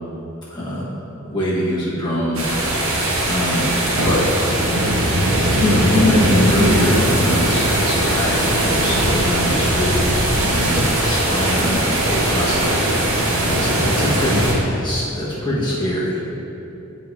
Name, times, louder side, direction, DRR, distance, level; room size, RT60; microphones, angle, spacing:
voice 1, 0.5-0.9 1.2-2.4 3.2-3.7 4.0-4.3 5.5-10.0 10.4-12.9 13.5-14.5 14.8-16.2, left 1 dB, 20° left, -8 dB, 1.5 m, -23 dB
sound 1, 2.3-14.5, right 1 dB, 70° right, 1.3 m, -19 dB
10.0 x 5.1 x 2.8 m, 3.0 s
head